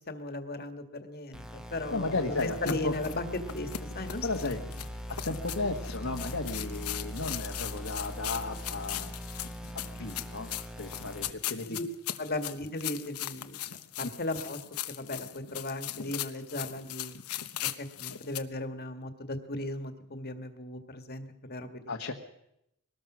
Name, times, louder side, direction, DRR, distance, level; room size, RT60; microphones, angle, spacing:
voice 1, 0.1-3.7 3.9-4.6 11.7-11.8 12.2-13.6 14.0-14.6 14.9-17.2 17.6-21.8, left 2 dB, 45° left, 8 dB, 1.8 m, -37 dB
sound 1, 1.3-11.3, equal, 5° right, 1.3 m, -41 dB
voice 2, 1.9-2.9 4.2-4.6 5.2-9.1 9.7-10.5 10.8-11.8 21.9-22.1, left 3 dB, 65° left, 1 dB, 1.4 m, -34 dB
sound 2, 2.4-18.4, left 12 dB, 85° left, 1.0 m, -39 dB
23.0 x 19.5 x 6.2 m, 0.81 s
head